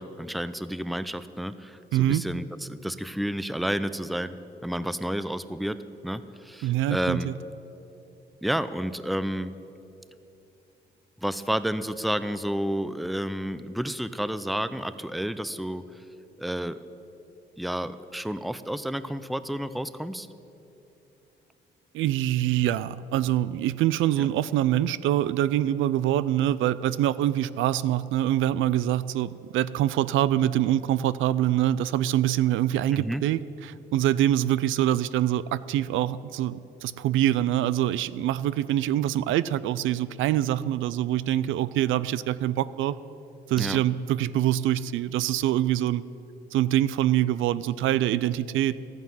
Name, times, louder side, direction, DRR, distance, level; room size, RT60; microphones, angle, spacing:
voice 1, 0.0-4.4 4.6-7.3 8.4-9.5 11.2-15.8 16.4-16.8 17.6-20.3 24.2-24.3 32.9-33.2 43.6-43.8, equal, ahead, 13 dB, 0.5 m, -30 dB
voice 2, 1.9-2.2 6.6-7.3 21.9-43.0 43.5-46.0 46.5-48.8, right 12 dB, 85° right, 17 dB, 0.4 m, -25 dB
12.5 x 9.4 x 7.5 m, 2.8 s
cardioid pair, 90°, 20 cm